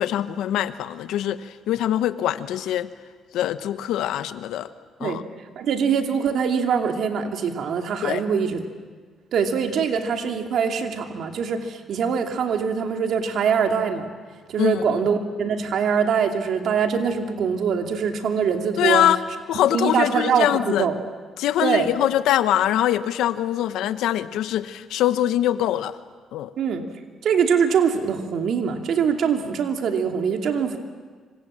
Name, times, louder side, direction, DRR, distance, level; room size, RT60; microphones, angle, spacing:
voice 1, 0.0-2.9 3.3-4.7 5.0-5.2 8.0-8.2 14.6-15.1 18.8-19.2 19.5-20.9 21.4-26.0 26.3-26.5, left 12 dB, 85° left, 12 dB, 1.1 m, -23 dB
voice 2, 5.6-8.6 9.3-14.1 14.5-19.0 19.7-21.0 21.6-21.9 26.6-26.8 27.2-30.8, right 6 dB, 70° right, 4 dB, 2.7 m, -23 dB
26.5 x 25.5 x 7.7 m, 1.5 s
cardioid pair, 90°, 0 cm